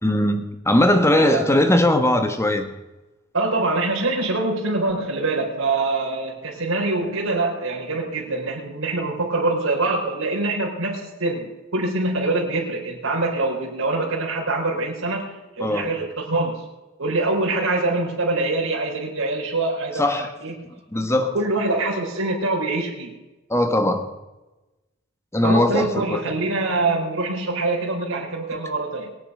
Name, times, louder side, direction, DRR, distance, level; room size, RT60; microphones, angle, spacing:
voice 1, 0.0-2.7 15.6-15.9 20.0-20.3 20.9-21.3 23.5-24.1 25.3-26.2, left 1 dB, 15° left, 8 dB, 1.4 m, -19 dB
voice 2, 1.1-1.4 3.3-16.6 17.0-20.1 20.4-20.5 21.3-23.2 25.4-29.1, right 2 dB, 85° right, -4 dB, 4.1 m, -24 dB
23.0 x 8.9 x 5.5 m, 1.1 s
head